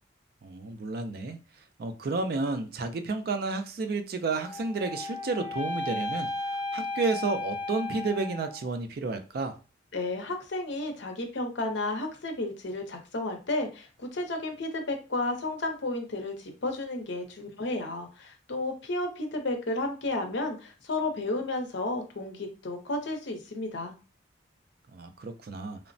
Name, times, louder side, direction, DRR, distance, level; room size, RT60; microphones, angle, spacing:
voice 1, 0.4-1.4 1.8-6.3 6.7-9.5 24.9-25.8, right 3 dB, 50° right, 7 dB, 0.3 m, -31 dB
sound 1, 4.4-8.7, left 2 dB, 20° left, 0.7 m, -34 dB
voice 2, 9.9-23.9, left 2 dB, 65° left, 4 dB, 0.6 m, -32 dB
3.0 x 2.0 x 2.5 m, 0.34 s
head